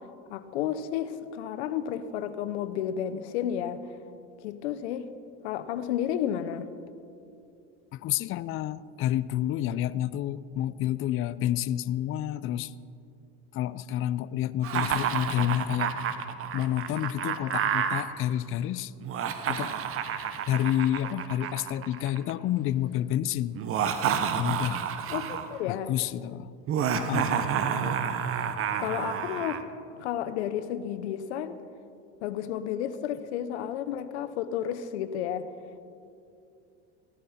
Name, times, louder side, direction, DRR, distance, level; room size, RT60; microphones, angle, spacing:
voice 1, 0.0-3.8 4.4-5.1 5.4-6.7 25.1-25.9 27.8-28.0 28.8-29.6 30.0-31.6 32.2-35.5, left 10 dB, 90° left, 12 dB, 0.8 m, -32 dB
voice 2, 7.9-12.7 13.5-15.9 16.5-18.9 19.5-19.7 20.5-23.6 24.4-24.8 25.7-26.5 26.9-27.4, left 12 dB, 40° left, 17 dB, 0.4 m, -29 dB
Laughter, 14.6-18.0 19.0-22.3 23.5-25.6 26.7-29.6, right 8 dB, 45° right, 1.0 m, -29 dB
16.0 x 12.5 x 4.3 m, 2.5 s
supercardioid pair, 105°, 32 cm